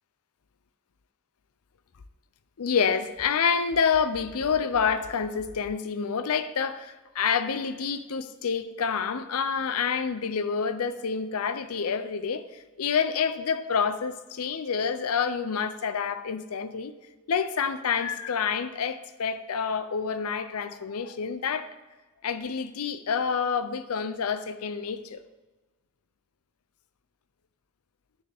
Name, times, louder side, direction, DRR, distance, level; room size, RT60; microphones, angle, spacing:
voice 1, 2.6-12.4 12.8-16.9 17.3-21.7 22.2-25.2, left 6 dB, 80° left, 0.5 m, -28 dB
9.0 x 6.7 x 3.5 m
head